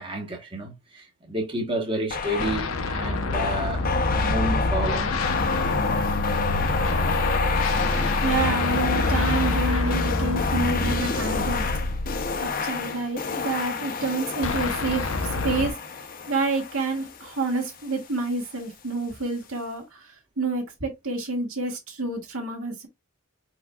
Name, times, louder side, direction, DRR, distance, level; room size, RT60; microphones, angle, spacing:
voice 1, 0.0-5.1, right 1 dB, 25° right, 1.0 m, -30 dB
sound 1, 2.1-2.7 3.3-18.0, left 4 dB, 40° left, 0.6 m, -29 dB
sound 2, 2.4-12.6 14.4-15.7, left 2 dB, 75° left, 0.8 m, -26 dB
voice 2, 8.2-11.7 12.4-15.1 15.4-15.7 16.3-22.9, right 3 dB, 75° right, 1.8 m, -28 dB
4.7 x 4.6 x 2.3 m
head